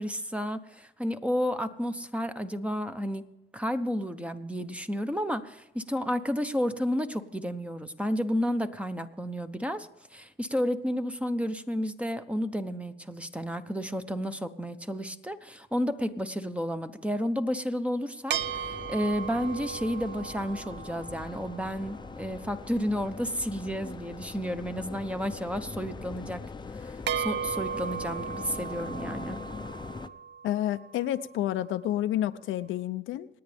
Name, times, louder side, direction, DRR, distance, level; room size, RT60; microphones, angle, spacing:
voice 1, 0.0-26.4 26.7-29.4, equal, 5° right, 9 dB, 0.9 m, -31 dB
sound 1, 18.3-30.1, left 4 dB, 20° left, 0.7 m, -42 dB
sound 2, 18.3-22.0 27.1-31.4, right 8 dB, 65° right, 0.6 m, -36 dB
voice 2, 30.4-33.3, left 12 dB, 80° left, 11 dB, 0.6 m, -29 dB
27.5 x 9.4 x 3.5 m, 0.96 s
cardioid pair, 90°, 20 cm